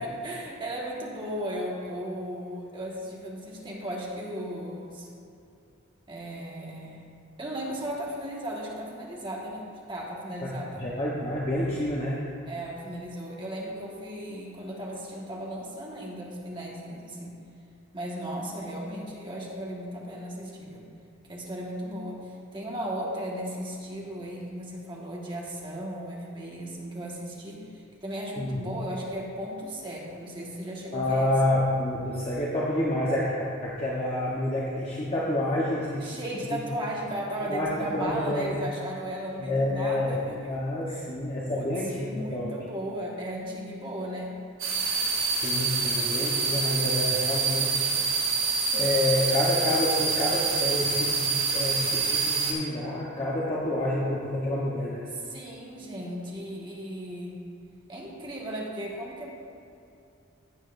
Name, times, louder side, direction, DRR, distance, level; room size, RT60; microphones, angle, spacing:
voice 1, 0.0-5.1 6.1-7.0 7.4-10.8 12.5-17.4 17.9-20.9 21.3-31.3 36.0-40.5 40.9-41.0 41.5-44.3 55.1-57.4 57.9-59.3, equal, 25° right, -4 dB, 1.6 m, -36 dB
voice 2, 10.8-12.2 28.4-28.6 30.9-33.3 33.6-36.2 36.5-36.6 37.5-38.6 39.4-40.2 40.5-42.5 45.3-47.9 48.2-48.3 48.5-55.1, left 1 dB, 30° left, -6 dB, 1.0 m, -28 dB
sound 1, 44.6-52.5, right 5 dB, 70° right, 2.2 m, -26 dB
15.5 x 8.8 x 2.6 m, 2.7 s
head